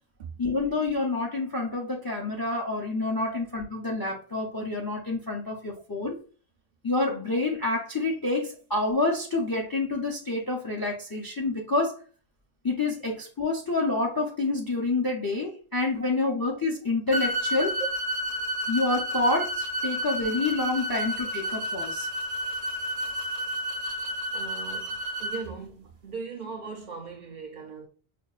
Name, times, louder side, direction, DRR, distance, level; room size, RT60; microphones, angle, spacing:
voice 1, 0.4-6.2 6.8-12.0 12.6-17.8 18.7-22.1, left 2 dB, 30° left, 0.4 m, -28 dB
sound 1, 17.1-25.4, equal, 90° right, 0.9 m, -31 dB
voice 2, 24.3-27.9, right 5 dB, 55° right, 0.5 m, -39 dB
5.2 x 2.1 x 2.3 m
omnidirectional pair, 1.1 m